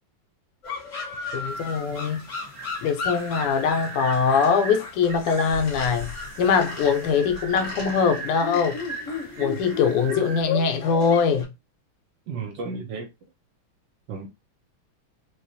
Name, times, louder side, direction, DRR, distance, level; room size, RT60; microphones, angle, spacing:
sound 1, 0.6-11.4, left 4 dB, 40° left, 1.3 m, -35 dB
voice 1, 1.3-2.3 2.8-8.8 9.4-11.5, left 6 dB, 85° left, 1.6 m, -22 dB
sound 2, 1.5-10.4, right 4 dB, 35° right, 0.9 m, -39 dB
voice 2, 12.3-13.1 14.1-14.3, right 4 dB, 70° right, 1.2 m, -33 dB
4.5 x 2.3 x 2.6 m
omnidirectional pair, 2.4 m